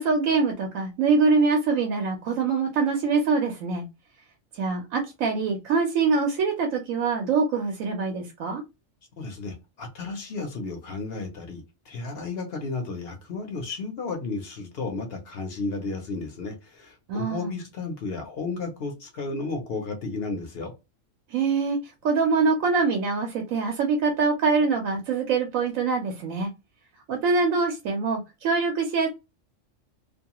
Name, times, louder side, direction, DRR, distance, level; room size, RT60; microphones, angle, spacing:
voice 1, 0.0-3.8 4.5-8.6 17.1-17.5 21.3-21.8 22.0-26.5 27.1-29.1, right 4 dB, 90° right, 1.0 m, -24 dB
voice 2, 9.2-20.7, left 3 dB, 55° left, 0.8 m, -33 dB
2.5 x 2.2 x 2.8 m
omnidirectional pair, 1.3 m